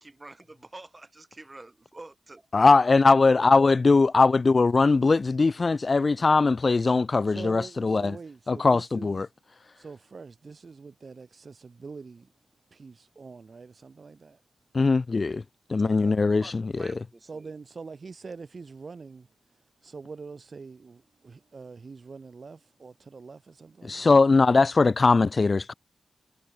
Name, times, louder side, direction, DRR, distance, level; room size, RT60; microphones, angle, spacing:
voice 1, 0.2-2.5 16.3-17.5, right 2 dB, 25° right, 8.0 m, -47 dB
voice 2, 2.5-8.2 8.5-9.3 14.7-15.4 15.7-16.9 23.8-25.7, left 3 dB, 40° left, 0.3 m, -21 dB
voice 3, 7.3-9.3 9.7-12.3 12.7-14.4 15.8-16.5 17.2-19.3 19.8-24.1, right 4 dB, 50° right, 1.7 m, -44 dB
cardioid pair, 70°, 0 cm